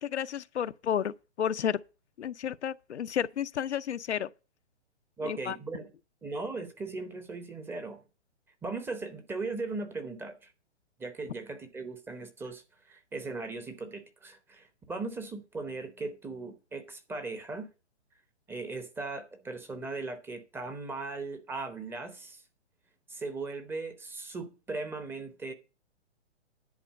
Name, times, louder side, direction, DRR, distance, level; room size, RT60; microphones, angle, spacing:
voice 1, 0.0-1.8 2.2-4.3 5.2-5.6, left 9 dB, 70° left, 0.6 m, -32 dB
voice 2, 5.2-5.9 6.2-8.0 8.6-10.5 11.0-17.7 18.5-22.4 23.1-25.5, right 3 dB, 5° right, 0.7 m, -38 dB
10.5 x 4.3 x 7.4 m
hypercardioid pair, 135°, 35 cm